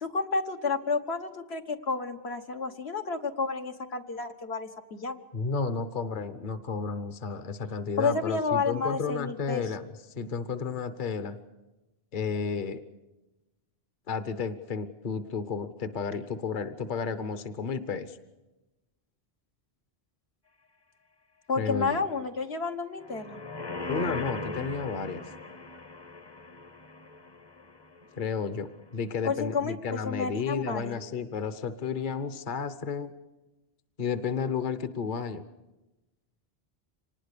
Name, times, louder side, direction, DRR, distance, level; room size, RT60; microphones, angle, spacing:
voice 1, 0.0-5.2 8.0-9.6 21.5-23.4 29.2-31.0, left 4 dB, 80° left, 4 dB, 1.7 m, -30 dB
voice 2, 5.3-11.4 12.1-12.8 14.1-18.2 21.6-22.0 23.9-25.2 28.1-33.1 34.0-35.4, left 5 dB, 50° left, 11 dB, 1.1 m, -32 dB
sound 1, 23.0-28.4 28.7-28.8, left 3 dB, 25° left, 0.7 m, -39 dB
26.0 x 19.5 x 6.7 m, 1.0 s
omnidirectional pair, 1.1 m